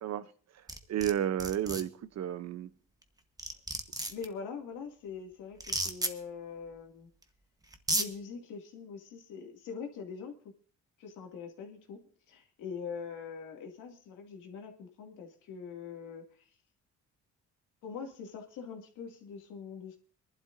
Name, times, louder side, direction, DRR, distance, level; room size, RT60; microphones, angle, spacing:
voice 1, 0.0-0.6 0.9-2.7, right 10 dB, 60° right, 0.9 m, -32 dB
sound 1, 0.7-1.1 1.4-1.8 3.0-3.1 3.4-4.3 5.6-6.1 7.2-7.3 7.7-8.1, right 2 dB, 10° right, 1.3 m, -32 dB
voice 2, 4.1-7.1 8.0-10.3 11.0-12.0 12.3-16.5 17.8-20.0, left 6 dB, 90° left, 2.5 m, -43 dB
25.0 x 11.5 x 2.7 m
cardioid pair, 90°, 30 cm